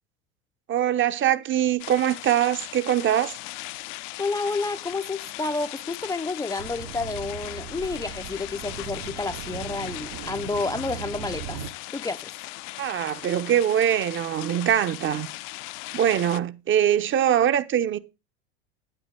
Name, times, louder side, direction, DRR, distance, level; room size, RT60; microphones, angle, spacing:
voice 1, 0.7-3.3 12.8-15.3 15.9-18.0, right 10 dB, 35° right, 1.0 m, -23 dB
sound 1, 1.8-16.4, left 20 dB, 55° left, 0.7 m, -38 dB
voice 2, 4.2-11.6 11.9-12.3, left 3 dB, 10° left, 0.6 m, -30 dB
sound 2, 6.6-11.7, right 9 dB, 55° right, 1.4 m, -38 dB
9.6 x 8.9 x 4.6 m
hypercardioid pair, 85°, 34 cm